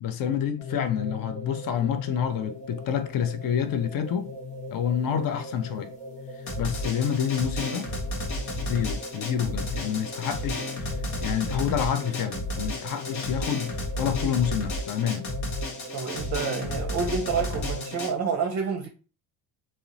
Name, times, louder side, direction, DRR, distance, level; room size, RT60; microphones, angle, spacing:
voice 1, 0.0-4.3 4.7-5.9 6.6-7.9 8.6-10.9 11.2-15.3, left 8 dB, 50° left, 0.5 m, -28 dB
sound 1, 0.6-18.2, left 2 dB, 15° left, 0.8 m, -39 dB
Drum, 6.5-18.1, left 1 dB, 80° left, 0.9 m, -33 dB
voice 2, 15.9-18.9, right 5 dB, 40° right, 0.5 m, -28 dB
2.8 x 2.0 x 2.5 m
cardioid pair, 85°, 44 cm